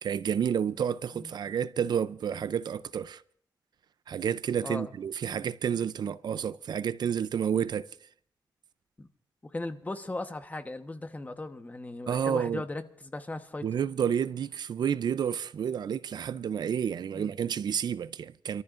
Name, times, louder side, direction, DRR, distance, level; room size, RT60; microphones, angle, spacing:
voice 1, 0.0-3.2 4.1-7.9 12.1-12.6 13.6-18.6, right 8 dB, 70° right, 0.5 m, -30 dB
voice 2, 9.4-13.6 17.1-17.3, left 2 dB, 20° left, 1.1 m, -37 dB
28.0 x 14.0 x 2.5 m
cardioid pair, 95°, 7 cm